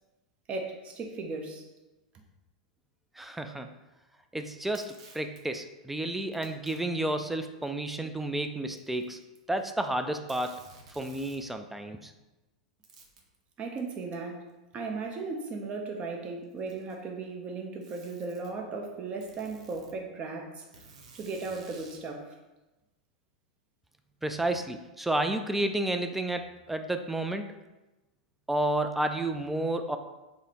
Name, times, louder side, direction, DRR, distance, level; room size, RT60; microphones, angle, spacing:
voice 1, 0.5-1.6 13.6-14.5 14.7-20.6 21.1-22.3, right 3 dB, 35° right, 2 dB, 0.6 m, -36 dB
voice 2, 3.2-3.7 4.3-9.2 9.5-10.6 11.0-12.1 24.2-27.5 28.5-30.0, right 1 dB, 5° right, 7 dB, 0.3 m, -31 dB
Packing tape duct tape, 4.6-5.4 6.3-6.8 7.6-7.7 8.7-9.6 9.9-10.0 10.3-11.5 12.8-13.3 14.5-14.6 15.5-15.6 16.4-17.1 17.8-18.5 19.2-20.0 20.7-22.1, right 3 dB, 70° right, 0.7 m, -53 dB
3.6 x 2.1 x 4.2 m, 1.1 s
hypercardioid pair, 100°, 4 cm